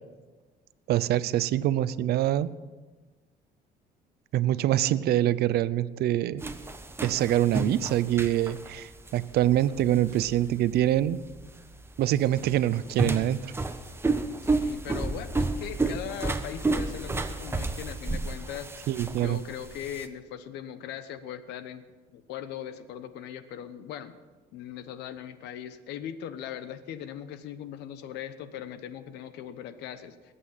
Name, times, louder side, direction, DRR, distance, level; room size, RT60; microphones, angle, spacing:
voice 1, 0.9-2.5 4.3-6.4 7.0-11.2 12.0-13.5 18.9-19.4, right 12 dB, 70° right, 17 dB, 0.6 m, -25 dB
sound 1, 6.4-20.1, right 3 dB, 15° right, 1.1 m, -32 dB
voice 2, 14.4-21.8 22.1-24.2 24.5-30.3, left 10 dB, 90° left, 12 dB, 1.0 m, -39 dB
20.5 x 8.4 x 5.7 m, 1.3 s
cardioid pair, 110°, 17 cm